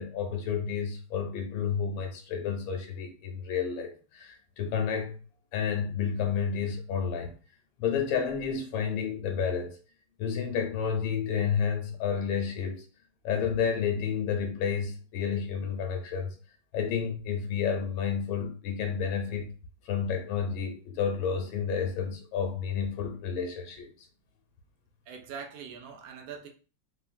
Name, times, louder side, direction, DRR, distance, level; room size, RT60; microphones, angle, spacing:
voice 1, 0.0-5.2 5.5-7.3 7.8-9.8 10.2-12.8 13.2-16.3 16.7-19.5 19.9-23.9, left 7 dB, 85° left, 1.4 m, -30 dB
voice 2, 25.1-26.5, right 6 dB, 75° right, 0.8 m, -42 dB
3.8 x 2.0 x 2.4 m
omnidirectional pair, 2.1 m